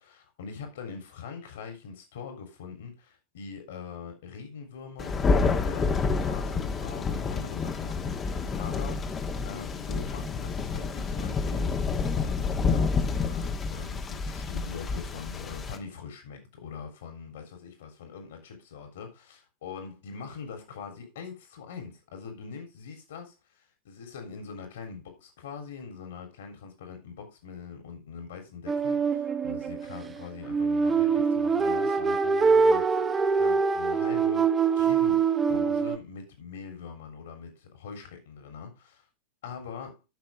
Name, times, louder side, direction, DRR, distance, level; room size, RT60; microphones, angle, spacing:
voice 1, 0.0-5.9 6.2-9.0 9.4-11.7 12.1-33.1 33.4-38.7 39.4-40.0, left 6 dB, 60° left, 3.3 m, -43 dB
Thunder, 5.0-15.8, left 4 dB, 20° left, 1.5 m, -29 dB
sound 1, 28.7-36.0, right 5 dB, 15° right, 1.1 m, -24 dB
13.0 x 6.2 x 3.4 m
figure-of-eight pair, 90°, 0 cm